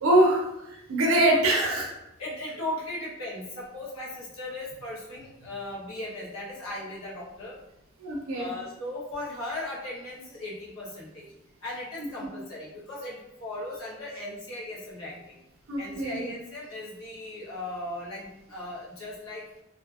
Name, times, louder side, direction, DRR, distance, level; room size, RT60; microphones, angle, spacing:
voice 1, 0.0-1.9 8.0-8.5 12.2-12.3 15.7-16.3, right 1 dB, 80° right, -1 dB, 0.5 m, -24 dB
voice 2, 2.2-7.6 8.3-11.3 11.6-15.4 15.8-19.4, left 1 dB, 85° left, -6 dB, 0.9 m, -37 dB
2.6 x 2.4 x 2.3 m, 0.88 s
head